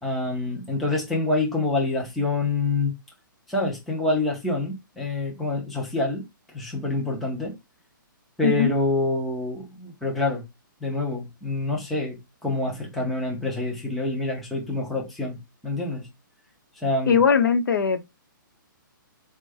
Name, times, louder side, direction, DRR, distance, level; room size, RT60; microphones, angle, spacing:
voice 1, 0.0-2.9 3.5-6.2 6.5-7.6 8.4-10.4 10.8-15.4 15.6-16.1 16.8-17.2, left 2 dB, ahead, 0.4 m, -26 dB
voice 2, 17.1-18.0, left 6 dB, 70° left, 0.8 m, -20 dB
4.3 x 2.2 x 4.7 m
hypercardioid pair, 175°, 11 cm